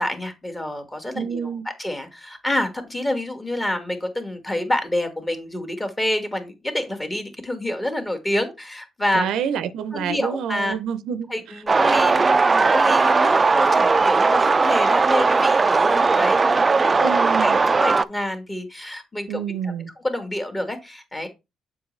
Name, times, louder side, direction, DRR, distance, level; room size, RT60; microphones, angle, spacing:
voice 1, 0.0-1.5 1.8-9.3 9.9-10.8 11.3-17.1 17.4-19.7 20.0-21.3, left 1 dB, 20° left, 1.7 m, -28 dB
voice 2, 1.1-1.6 9.1-11.3 17.0-17.6 19.3-19.9, right 8 dB, 80° right, 0.5 m, -27 dB
sound 1, 11.7-18.0, right 4 dB, 30° right, 0.3 m, -18 dB
7.1 x 5.0 x 3.2 m
cardioid pair, 90°, 0 cm